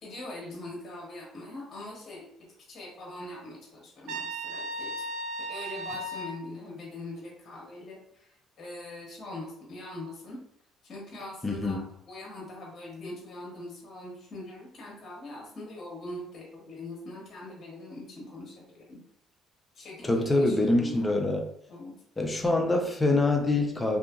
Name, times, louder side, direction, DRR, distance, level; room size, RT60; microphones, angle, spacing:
voice 1, 0.0-2.3 2.7-5.1 5.4-10.4 10.8-19.0 19.7-21.2 21.7-21.9, left 2 dB, 50° left, -3 dB, 1.1 m, -42 dB
Trumpet, 4.1-6.4, right 1 dB, 75° right, 0.4 m, -35 dB
voice 2, 11.4-11.9 20.0-21.4 22.2-24.0, left 2 dB, 20° left, 3 dB, 0.6 m, -25 dB
2.8 x 2.4 x 2.4 m, 0.70 s
supercardioid pair, 70°, 0 cm